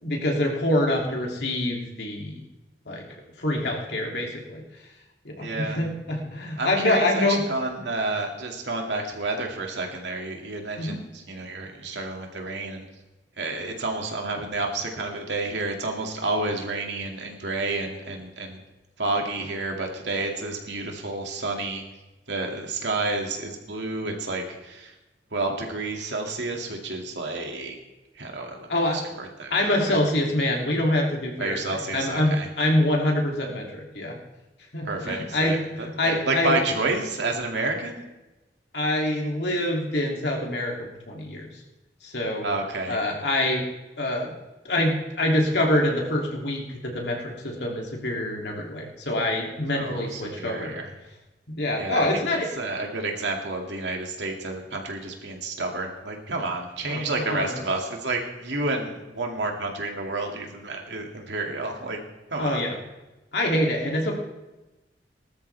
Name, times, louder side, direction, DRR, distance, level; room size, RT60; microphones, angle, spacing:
voice 1, 0.0-2.4 2.9-3.0 3.4-4.6 5.2-7.4 10.8-11.0 28.7-29.0 29.5-34.1 34.7-35.5 36.0-36.5 38.7-40.7 41.1-41.5 42.0-42.4 42.9-43.6 44.0-44.3 44.6-50.7 51.5-52.5 56.9-57.0 57.3-57.5 62.4-62.7 63.3-64.1, left 1 dB, 70° left, -1 dB, 2.8 m, -25 dB
voice 2, 5.4-5.8 6.6-12.8 13.4-18.6 19.0-21.8 22.3-24.9 25.3-27.8 28.1-30.0 31.4-32.5 34.8-38.0 42.4-43.0 49.7-50.9 51.8-62.0 62.3-62.6, right 2 dB, 90° right, 2 dB, 2.3 m, -30 dB
19.0 x 13.0 x 3.4 m, 1.1 s
head